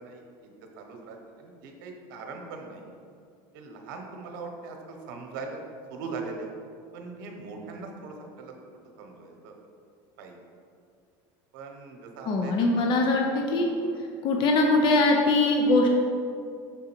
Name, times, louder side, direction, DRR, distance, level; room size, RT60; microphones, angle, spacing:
voice 1, 0.0-2.8 3.5-5.6 5.9-6.5 6.9-8.5 9.0-9.6 10.2-10.3 11.5-12.9 13.6-14.0, right 4 dB, 85° right, 3 dB, 0.9 m, -41 dB
voice 2, 12.2-13.7 14.2-15.9, left 2 dB, 50° left, 1 dB, 0.6 m, -22 dB
6.1 x 3.8 x 4.5 m, 2.3 s
supercardioid pair, 120°, 11 cm